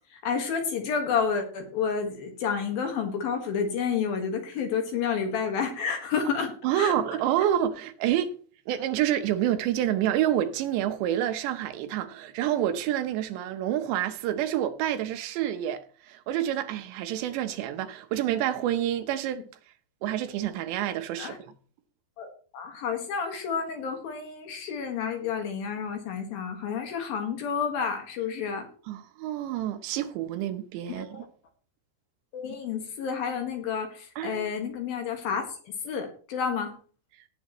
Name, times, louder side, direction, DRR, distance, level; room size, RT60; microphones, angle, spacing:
voice 1, 0.1-7.2 21.2-21.4 22.2-28.7 30.9-31.2 32.3-36.7, left 6 dB, 65° left, 3.1 m, -30 dB
voice 2, 6.6-8.3 8.7-19.4 20.0-21.5 28.9-31.2 34.2-34.4, right 11 dB, 80° right, 3.2 m, -28 dB
17.5 x 8.5 x 3.1 m
omnidirectional pair, 5.1 m